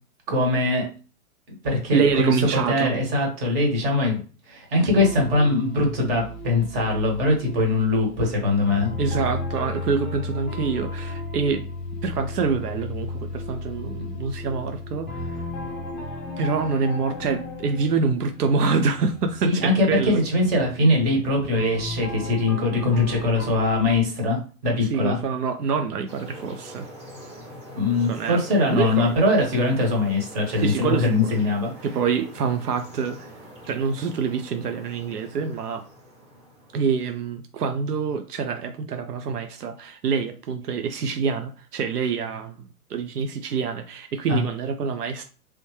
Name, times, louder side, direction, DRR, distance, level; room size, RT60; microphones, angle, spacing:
voice 1, 0.3-0.9 1.5-4.2 4.5-8.9 19.4-25.2 27.7-31.7 44.3-44.4, left 2 dB, 40° right, 0 dB, 1.7 m, -22 dB
voice 2, 1.9-2.9 9.0-11.7 12.0-15.5 16.4-20.2 24.8-26.9 28.0-29.3 30.6-31.3 31.8-33.3 33.7-35.8 36.7-45.2, right 5 dB, 85° right, 7 dB, 0.6 m, -26 dB
sound 1, 5.0-24.0, left 2 dB, ahead, 0.6 m, -35 dB
sound 2, 26.1-37.4, equal, 15° right, 1.0 m, -44 dB
3.4 x 2.7 x 3.1 m, 0.38 s
hypercardioid pair, 135°, 46 cm